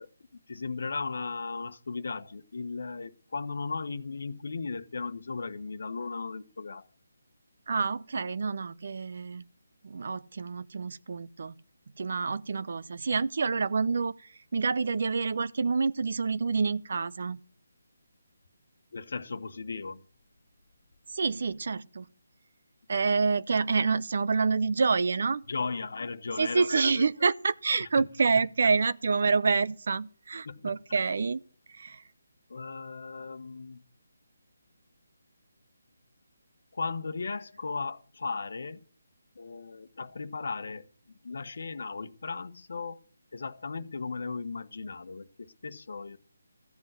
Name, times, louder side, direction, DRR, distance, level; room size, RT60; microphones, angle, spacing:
voice 1, 0.0-6.9 18.9-20.0 23.0-23.1 25.5-27.3 27.8-28.1 28.4-28.5 30.4-30.8 32.5-33.8 36.7-38.8 39.3-43.0 43.3-46.2, left 4 dB, 65° left, 1.1 m, -36 dB
voice 2, 7.7-9.4 9.8-11.5 12.0-14.1 14.5-17.4 21.1-22.1 22.9-25.4 26.4-31.4 31.7-32.0, right 4 dB, 60° right, 0.7 m, -27 dB
14.5 x 7.8 x 7.5 m
figure-of-eight pair, 155°, 0 cm